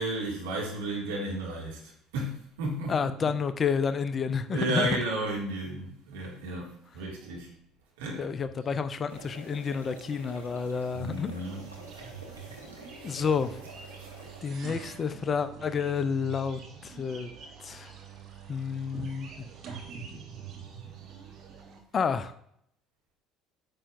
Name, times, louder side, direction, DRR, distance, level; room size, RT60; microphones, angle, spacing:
voice 1, 0.0-1.8 2.1-3.0 4.5-7.5 8.0-8.3 10.9-11.6 13.0-13.2, right 2 dB, 70° right, -3 dB, 2.0 m, -33 dB
voice 2, 2.9-5.0 8.2-11.4 13.0-13.6 14.4-17.3 17.6-17.9 18.5-19.3 21.9-22.3, left 6 dB, 35° left, 11 dB, 0.5 m, -30 dB
sound 1, 9.1-14.4, right 1 dB, 90° right, 1.0 m, -48 dB
sound 2, 11.4-21.8, right 6 dB, 45° right, 1.1 m, -45 dB
8.7 x 5.6 x 2.5 m, 0.70 s
figure-of-eight pair, 55°, 0 cm